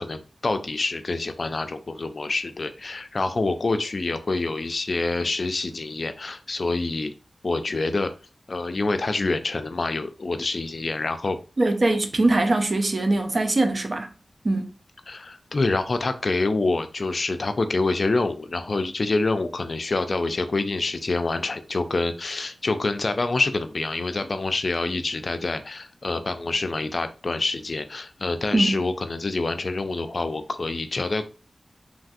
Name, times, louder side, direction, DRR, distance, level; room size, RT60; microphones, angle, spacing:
voice 1, 0.0-7.1 7.4-8.1 8.5-11.4 15.1-31.2, left 3 dB, 55° left, 0.4 m, -26 dB
voice 2, 11.6-14.1 14.4-14.7 28.5-28.8, right 2 dB, 50° right, 0.5 m, -22 dB
3.2 x 2.5 x 2.4 m
wide cardioid pair, 75°, 0 cm